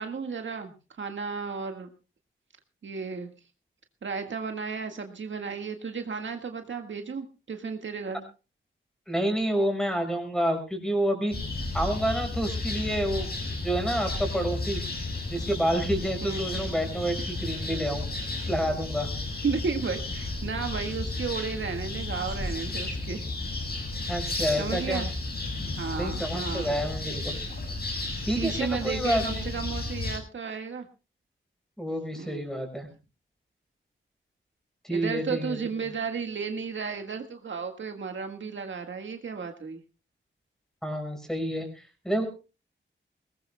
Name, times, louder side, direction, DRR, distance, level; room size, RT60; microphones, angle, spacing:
voice 1, 0.0-1.9 2.8-3.3 4.0-8.2 16.2-16.5 19.4-23.3 24.6-25.1 25.8-26.7 28.4-30.9 32.2-32.4 34.9-39.8, right 5 dB, 65° right, 5 dB, 1.8 m, -33 dB
voice 2, 9.1-11.3 11.7-14.8 15.3-18.1 18.5-19.1 24.1-25.0 25.9-27.4 28.3-29.4 31.8-32.9 34.8-35.6 40.8-42.2, right 1 dB, ahead, 5 dB, 5.6 m, -29 dB
sound 1, 11.3-30.2, left 2 dB, 50° left, 6.4 m, -33 dB
22.0 x 19.5 x 2.2 m, 0.32 s
wide cardioid pair, 125°, 21 cm